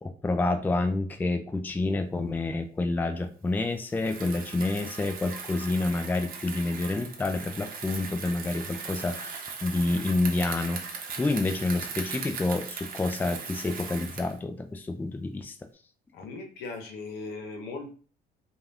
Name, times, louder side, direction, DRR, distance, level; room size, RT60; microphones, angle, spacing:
voice 1, 0.0-10.8 11.2-15.6, left 2 dB, 10° left, 7 dB, 0.3 m, -28 dB
Bicycle, 3.9-14.4, right 5 dB, 60° right, 0.7 m, -39 dB
voice 2, 16.1-17.9, left 3 dB, 85° left, 3 dB, 0.9 m, -38 dB
2.6 x 2.4 x 3.3 m, 0.40 s
cardioid pair, 110°, 17 cm